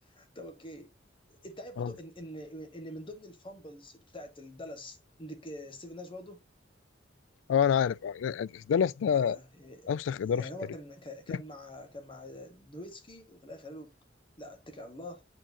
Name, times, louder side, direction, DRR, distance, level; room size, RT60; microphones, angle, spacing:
voice 1, 0.1-0.9 1.3-6.4 9.1-10.0 10.4-13.9 14.4-15.2, left 1 dB, 25° left, 1.2 m, -45 dB
voice 2, 7.5-9.4 9.9-10.5 11.3-11.4, left 8 dB, 80° left, 0.3 m, -27 dB
8.8 x 4.5 x 2.7 m
head